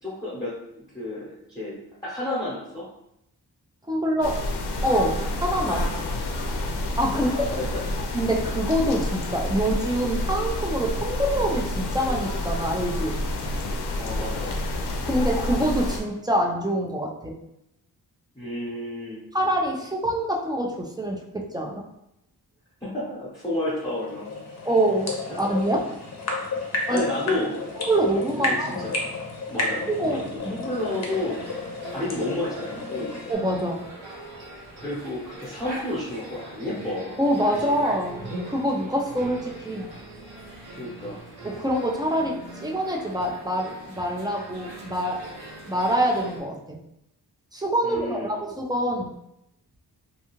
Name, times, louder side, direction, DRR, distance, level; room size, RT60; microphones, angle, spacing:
voice 1, 0.0-1.7 2.0-2.8 7.1-7.8 13.9-14.6 18.3-19.2 22.8-24.3 25.4-25.5 26.9-27.7 28.4-29.0 29.5-30.2 30.5-31.4 31.9-33.2 34.8-37.2 37.6-37.8 40.8-41.2 47.8-48.3, left 1 dB, 10° left, -8 dB, 0.8 m, -31 dB
voice 2, 3.9-4.4 4.8-5.9 7.0-7.5 8.1-13.2 15.0-17.4 19.3-21.8 24.6-25.9 26.9-27.0 27.9-28.9 29.9-30.5 33.3-33.9 37.2-39.9 41.4-45.3 45.7-46.8 47.5-49.2, right 1 dB, 10° right, 0 dB, 0.3 m, -25 dB
sound 1, 4.2-16.0, left 1 dB, 85° left, 0.5 m, -29 dB
sound 2, 23.5-33.3, left 2 dB, 40° left, 0.6 m, -32 dB
sound 3, 30.7-46.4, right 1 dB, 70° right, 0.9 m, -41 dB
2.6 x 2.3 x 2.9 m, 0.82 s
wide cardioid pair, 90°, 39 cm